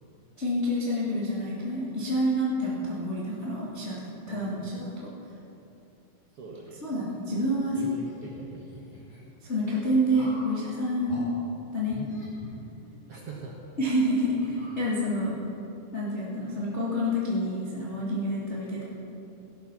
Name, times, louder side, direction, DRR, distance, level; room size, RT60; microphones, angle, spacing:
voice 1, 0.4-5.1 6.8-7.8 9.4-11.2 11.7-12.0 13.8-15.4 15.9-18.8, equal, 25° left, -7 dB, 1.4 m, -28 dB
voice 2, 4.3-4.7 6.3-6.9 7.3-7.4 7.7-8.7 13.1-13.5, right 3 dB, 65° right, -2 dB, 1.5 m, -43 dB
sound 1, 7.7-9.2 10.1-10.6 11.1-11.3 11.9-13.1 13.6-13.7 14.4-15.3, equal, 55° left, 6.1 m, -45 dB
17.5 x 10.5 x 6.0 m, 2.9 s
omnidirectional pair, 4.7 m